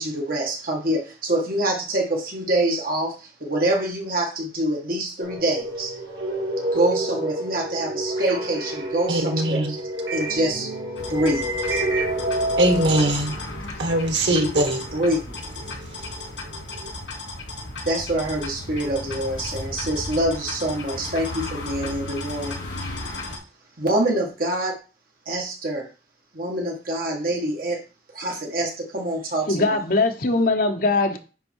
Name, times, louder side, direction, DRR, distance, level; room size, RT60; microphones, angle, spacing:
voice 1, 0.0-5.9 6.7-9.8 10.1-10.7 11.1-11.8 14.9-15.4 17.8-22.9 23.8-24.8 25.2-25.9 26.3-27.8 28.1-29.8, right 1 dB, 55° right, 1.8 m, -25 dB
sound 1, 5.2-13.1, right 1 dB, 70° right, 2.2 m, -28 dB
voice 2, 9.1-10.1 12.5-15.0 15.6-16.1 16.5-16.9, right 1 dB, 85° right, 1.6 m, -24 dB
sound 2, 11.0-23.4, left 2 dB, 80° left, 3.2 m, -35 dB
voice 3, 29.5-31.2, left 3 dB, 55° left, 1.1 m, -21 dB
10.0 x 3.8 x 4.6 m
head